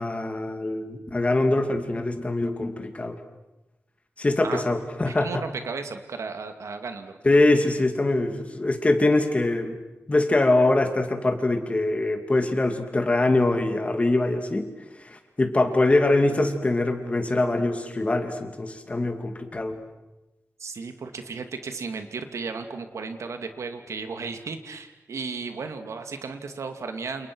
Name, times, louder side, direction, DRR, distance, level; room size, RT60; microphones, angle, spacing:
voice 1, 0.0-3.2 4.2-5.4 7.2-9.8 10.1-14.7 15.0-19.8, left 2 dB, 25° left, 6 dB, 2.6 m, -23 dB
voice 2, 5.1-7.1 20.6-27.3, right 4 dB, 75° right, 7 dB, 2.4 m, -34 dB
29.5 x 28.5 x 6.3 m, 1.0 s
wide cardioid pair, 165°, 5 cm